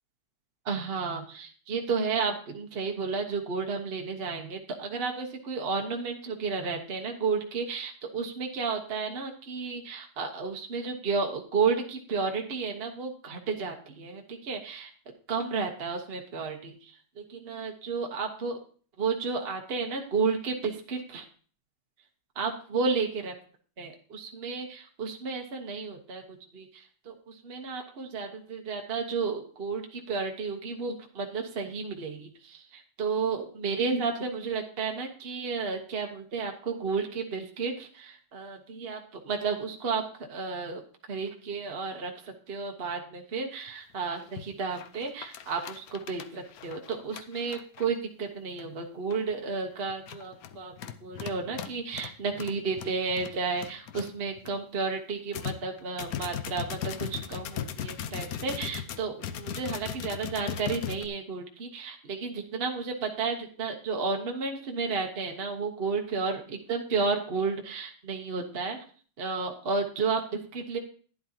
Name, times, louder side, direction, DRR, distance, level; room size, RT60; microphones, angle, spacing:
voice 1, 0.7-14.9 15.3-18.6 19.0-21.2 22.3-23.3 23.8-40.8 41.1-50.7 51.0-68.8 69.2-70.8, right 4 dB, 40° right, 3 dB, 0.9 m, -32 dB
sound 1, 43.7-43.8 44.2-44.5 44.8-48.0 48.6-48.7 49.1-49.3 49.9-54.5 54.9-55.0 55.3-61.1, left 9 dB, 85° left, 0.7 m, -38 dB
11.5 x 10.5 x 2.9 m, 0.43 s
omnidirectional pair, 2.3 m